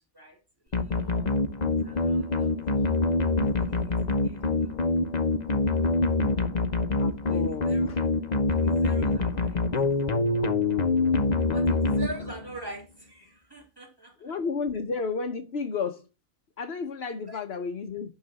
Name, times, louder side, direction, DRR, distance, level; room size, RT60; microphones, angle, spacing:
voice 1, 0.6-1.3 1.8-3.0 3.4-3.9 4.2-4.9 7.3-7.8 8.5-9.6 10.3-10.4 11.5-14.3 17.3-17.4, right 1 dB, 15° right, 2.9 m, -45 dB
sound 1, 0.7-12.6, left 3 dB, 35° left, 1.0 m, -25 dB
voice 2, 7.0-8.1 14.2-16.1 16.6-18.1, left 5 dB, 50° left, 1.1 m, -32 dB
11.5 x 3.9 x 7.7 m
omnidirectional pair, 1.4 m